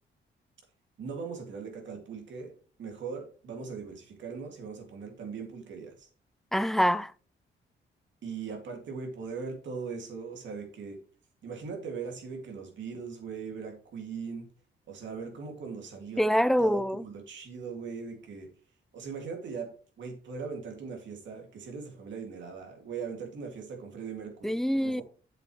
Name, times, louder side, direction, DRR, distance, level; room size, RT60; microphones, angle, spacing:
voice 1, 1.0-2.5 2.8-6.1 8.2-11.0 11.4-14.5 14.9-16.2 16.6-18.5 18.9-25.0, right 5 dB, 75° right, 2.4 m, -40 dB
voice 2, 6.5-7.1 16.2-17.0 24.4-25.0, equal, ahead, 0.3 m, -25 dB
7.8 x 7.7 x 3.2 m
cardioid pair, 90°, 19 cm